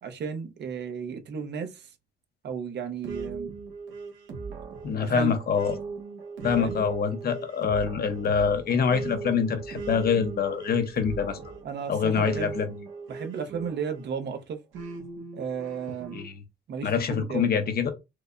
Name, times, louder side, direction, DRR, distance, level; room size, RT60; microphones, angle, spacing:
voice 1, 0.0-1.9 2.4-3.5 5.0-5.4 6.6-6.8 11.6-12.6 13.1-14.6 15.3-16.2 16.7-17.6, right 6 dB, 60° right, 0.8 m, -34 dB
sound 1, 3.0-14.1 14.7-16.3, right 4 dB, 85° right, 1.1 m, -39 dB
voice 2, 4.8-5.7 6.4-11.4 11.9-12.7 16.1-16.4 16.8-17.9, left 6 dB, 50° left, 0.8 m, -25 dB
4.6 x 2.1 x 2.5 m
cardioid pair, 90°, 20 cm